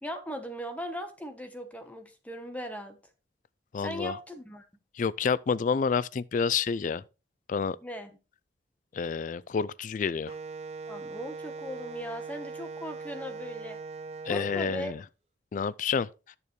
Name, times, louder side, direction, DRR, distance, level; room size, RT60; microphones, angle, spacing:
voice 1, 0.0-3.0 3.8-4.6 7.8-8.1 10.9-13.8 14.2-14.9, equal, 10° left, 1.1 m, -38 dB
voice 2, 3.7-4.1 5.0-7.0 7.5-7.8 8.9-10.3 14.3-14.9 15.5-16.1, left 6 dB, 45° left, 0.3 m, -29 dB
Wind instrument woodwind instrument, 10.3-14.9, right 4 dB, 35° right, 0.6 m, -40 dB
10.5 x 6.9 x 3.2 m
head